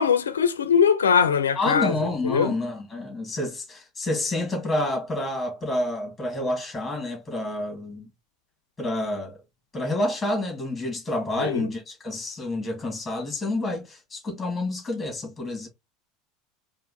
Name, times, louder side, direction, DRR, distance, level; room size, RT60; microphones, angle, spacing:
voice 1, 0.0-2.5 11.4-11.7, left 7 dB, 85° left, 0.5 m, -21 dB
voice 2, 1.6-8.1 8.8-9.4 9.7-15.7, left 1 dB, 20° left, 2.0 m, -29 dB
4.4 x 2.4 x 3.7 m
hypercardioid pair, 75°, 0 cm